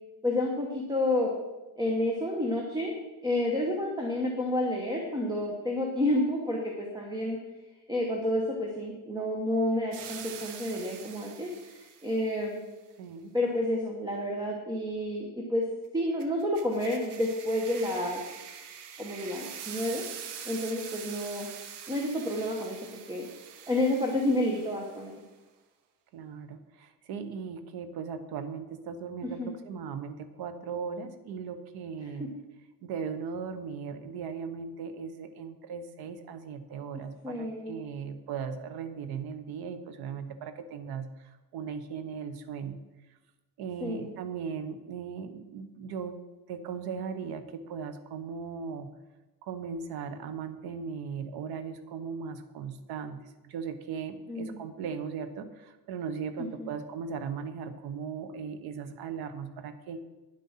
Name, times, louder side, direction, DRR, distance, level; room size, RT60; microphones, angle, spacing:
voice 1, 0.2-1.3 1.8-2.9 3.2-7.4 7.9-12.6 13.3-15.6 15.9-18.2 19.0-20.0 20.4-21.5 21.9-22.8 23.1-23.3 23.7-25.1 29.2-29.5 32.0-32.1 37.2-37.8 43.8-44.1 54.3-54.6 56.6-56.7, left 1 dB, 10° right, 0 dB, 1.1 m, -30 dB
sound 1, 9.9-12.3 16.2-25.1, right 8 dB, 85° right, 1.3 m, -44 dB
voice 2, 13.0-13.3 26.1-32.3 32.8-42.8 43.6-46.2 46.5-48.9 49.4-60.0, right 6 dB, 65° right, 10 dB, 1.2 m, -38 dB
10.0 x 7.8 x 5.7 m, 1.1 s
cardioid pair, 160°, 40 cm